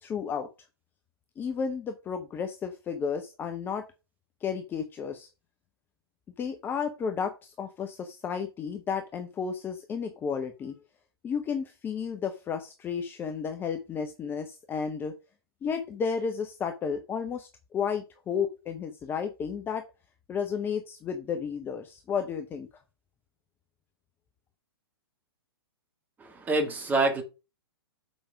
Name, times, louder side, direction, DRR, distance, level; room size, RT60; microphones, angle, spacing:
voice 1, 0.0-0.5 1.4-3.9 4.4-5.3 6.4-10.7 11.2-15.1 15.6-19.8 20.3-22.7, left 6 dB, 15° left, 0.8 m, -32 dB
voice 2, 26.2-27.2, right 2 dB, 15° right, 1.9 m, -26 dB
7.1 x 5.2 x 4.8 m
figure-of-eight pair, 110°, 13 cm